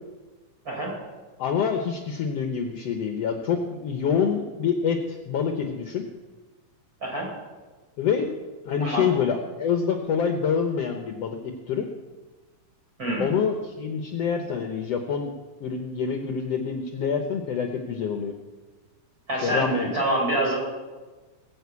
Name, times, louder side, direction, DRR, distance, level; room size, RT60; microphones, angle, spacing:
voice 1, 1.4-6.1 8.0-8.3 8.7-11.9 13.2-15.3 15.6-18.3 19.4-20.0, left 6 dB, 65° left, 4 dB, 1.8 m, -26 dB
voice 2, 19.3-20.6, right 1 dB, 25° right, -2 dB, 5.3 m, -26 dB
20.5 x 6.9 x 8.3 m, 1.3 s
omnidirectional pair, 3.5 m